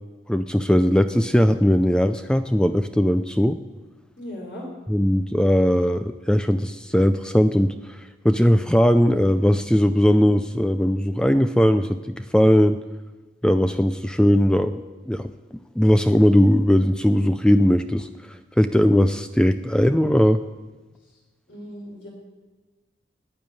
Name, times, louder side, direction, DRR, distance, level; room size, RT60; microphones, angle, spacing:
voice 1, 0.3-3.6 4.9-12.8 13.4-15.3 15.8-20.4, equal, 5° left, 10 dB, 0.4 m, -19 dB
voice 2, 4.2-4.7 21.5-22.1, equal, 70° left, -2 dB, 3.7 m, -37 dB
12.0 x 9.6 x 8.9 m, 1.2 s
head